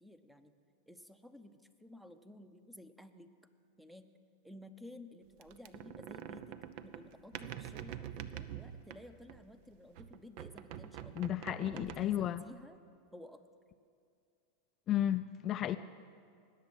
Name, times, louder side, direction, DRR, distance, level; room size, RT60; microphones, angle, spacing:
voice 1, 0.0-0.5 0.9-3.3 3.8-4.1 4.4-11.1 11.7-12.8 13.1-13.4, left 1 dB, 5° right, 10 dB, 0.8 m, -54 dB
sound 1, 5.4-9.6 10.0-12.4, right 10 dB, 55° right, 0.7 m, -46 dB
voice 2, 11.2-12.4 14.9-15.8, left 11 dB, 35° left, 10 dB, 0.4 m, -33 dB
19.0 x 7.4 x 7.9 m, 2.4 s
hypercardioid pair, 120°, 0 cm